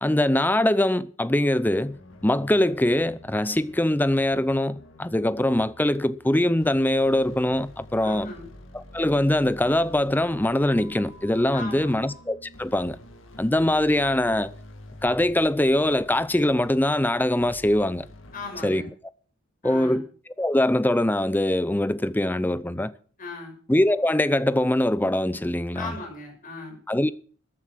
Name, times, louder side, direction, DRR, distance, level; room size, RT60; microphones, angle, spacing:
voice 1, 0.0-2.0 2.2-8.3 8.7-13.0 13.4-14.5 15.0-18.1 18.6-18.8 19.6-20.1 20.4-22.9 23.7-25.9 26.9-27.1, left 1 dB, 10° left, 0.6 m, -23 dB
sound 1, 1.6-18.7, left 1 dB, 70° left, 2.2 m, -48 dB
voice 2, 8.0-8.5 11.5-12.1 18.3-18.9 19.6-20.0 23.2-23.5 25.7-26.8, left 3 dB, 45° left, 6.5 m, -37 dB
sound 2, 10.2-12.2, equal, 80° right, 7.0 m, -51 dB
14.0 x 9.7 x 6.1 m
head